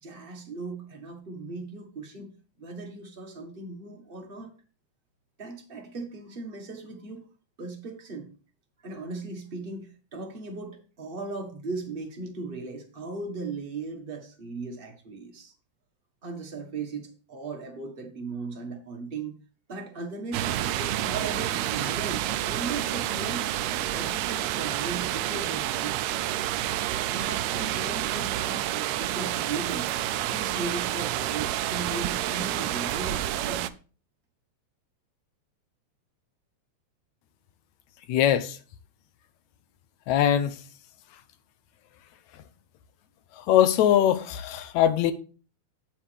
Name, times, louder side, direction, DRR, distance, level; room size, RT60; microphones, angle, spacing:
voice 1, 0.0-2.3 2.6-4.5 5.4-7.2 7.6-8.3 8.8-15.5 16.2-19.3 19.7-20.4 20.8-23.5 23.9-26.0 27.1-29.9 30.3-33.7, right 3 dB, 30° right, 1.0 m, -37 dB
sound 1, 20.3-33.7, right 13 dB, 80° right, 1.6 m, -29 dB
voice 2, 38.1-38.6 40.1-40.6 43.4-45.1, left 10 dB, 75° left, 2.0 m, -22 dB
8.4 x 8.4 x 3.5 m
omnidirectional pair, 3.4 m